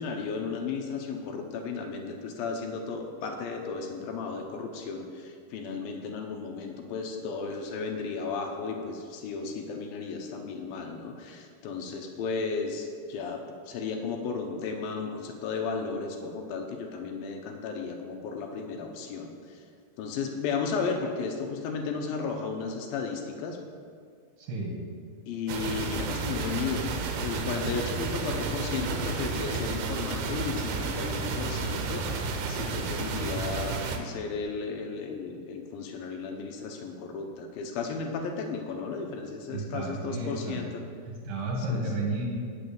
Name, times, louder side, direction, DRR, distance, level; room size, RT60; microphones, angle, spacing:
voice 1, 0.0-19.6 20.0-23.6 25.3-40.7 41.7-41.8, left 5 dB, 75° left, 3 dB, 2.4 m, -34 dB
voice 2, 24.4-24.7 39.5-40.6 41.0-42.3, right 2 dB, 55° right, -1 dB, 3.2 m, -32 dB
sound 1, 25.5-34.0, right 4 dB, 80° right, 3.0 m, -32 dB
9.7 x 6.4 x 7.0 m, 2.2 s
omnidirectional pair, 4.8 m